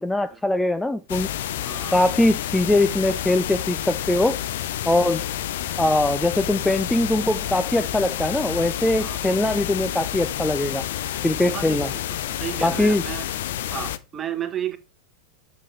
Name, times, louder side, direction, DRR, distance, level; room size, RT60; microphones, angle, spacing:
voice 1, 0.0-1.3 1.9-4.4 4.9-5.2 5.8-10.8 11.2-11.9 12.6-13.0, left 1 dB, 5° left, 0.5 m, -22 dB
sound 1, 1.1-14.0, left 12 dB, 55° left, 0.6 m, -29 dB
voice 2, 1.6-2.1 9.0-9.2 11.5-12.0 12.3-13.3 13.7-14.8, right 10 dB, 25° right, 1.2 m, -32 dB
8.1 x 7.6 x 3.4 m
figure-of-eight pair, 90°, 0 cm